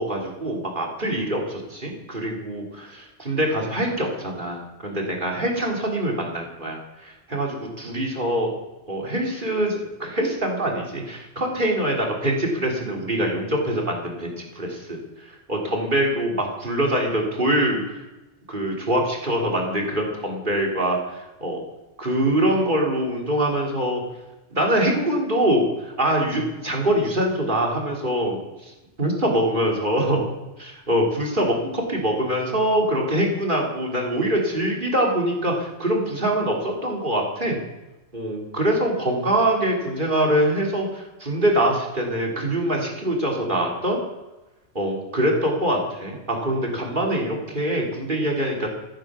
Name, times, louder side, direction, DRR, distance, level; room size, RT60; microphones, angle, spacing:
voice 1, 0.0-8.5 8.9-18.0 18.5-21.0 21.4-21.6 22.0-24.0 24.5-28.4 29.0-30.2 30.6-37.6 38.1-44.0 44.7-48.7, right 1 dB, 45° right, 0 dB, 3.3 m, -24 dB
16.0 x 12.5 x 6.1 m, 1.0 s
omnidirectional pair, 1.1 m